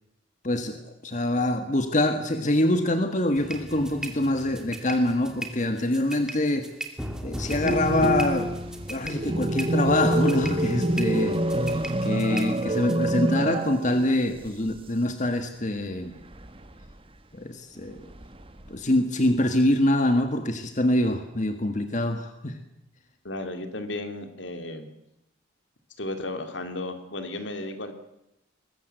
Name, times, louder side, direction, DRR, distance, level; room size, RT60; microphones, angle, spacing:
voice 1, 0.4-6.7 7.2-8.5 8.9-16.1 17.3-18.0 18.7-22.6, left 1 dB, 40° left, 7 dB, 1.6 m, -25 dB
sound 1, 3.4-12.9, right 1 dB, 5° right, 2.6 m, -38 dB
sound 2, 7.6-14.2 14.5-14.6 16.3-16.9 18.0-18.7, right 1 dB, 30° right, 1.4 m, -26 dB
voice 2, 23.2-24.9 26.0-27.9, left 2 dB, 70° left, 7 dB, 2.9 m, -34 dB
22.5 x 21.0 x 7.9 m, 0.87 s
head